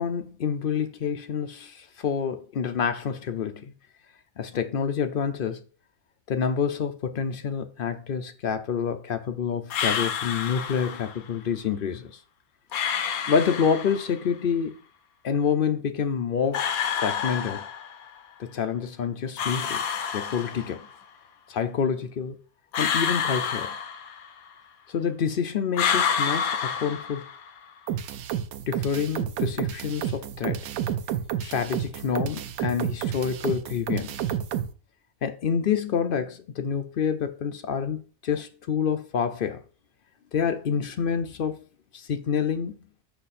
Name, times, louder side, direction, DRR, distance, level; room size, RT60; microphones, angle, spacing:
voice 1, 0.0-3.7 4.4-5.6 6.3-12.2 13.3-14.7 15.2-16.7 17.0-17.6 18.4-19.8 20.1-20.8 21.5-22.4 22.8-23.7 24.9-27.2 28.7-30.7 31.4-34.2 35.2-38.0 38.2-39.6 40.3-41.6 41.9-42.7, left 7 dB, 60° left, 0.6 m, -27 dB
Breaths of Refreshing Taste, 9.7-11.2 12.7-14.2 16.5-18.1 19.4-20.9 22.7-24.5 25.7-27.6, left 7 dB, 80° left, 1.1 m, -28 dB
ultra hardcore beat sample, 27.9-34.7, right 10 dB, 85° right, 1.1 m, -30 dB
5.7 x 5.5 x 4.2 m
omnidirectional pair, 1.5 m